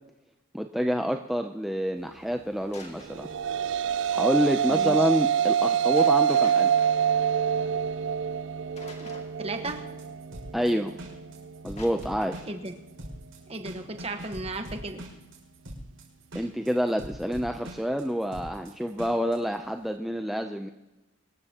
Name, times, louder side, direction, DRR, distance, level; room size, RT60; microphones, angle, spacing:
voice 1, 0.5-3.3 4.1-6.7 10.5-10.9 11.6-12.5 16.3-20.7, equal, ahead, 5 dB, 0.5 m, -28 dB
sound 1, 2.7-3.5 6.0-7.6 8.8-9.7 11.8-12.6, left 2 dB, 30° left, 2.2 m, -48 dB
sound 2, 3.0-11.6, right 8 dB, 60° right, 0.4 m, -26 dB
voice 2, 4.7-5.1 9.0-9.1 9.4-9.9 12.5-12.7 13.5-15.1, right 2 dB, 30° right, 7 dB, 1.2 m, -35 dB
sound 3, 9.6-19.4, equal, 80° right, 5.8 m, -42 dB
25.0 x 13.5 x 2.9 m, 1.0 s
head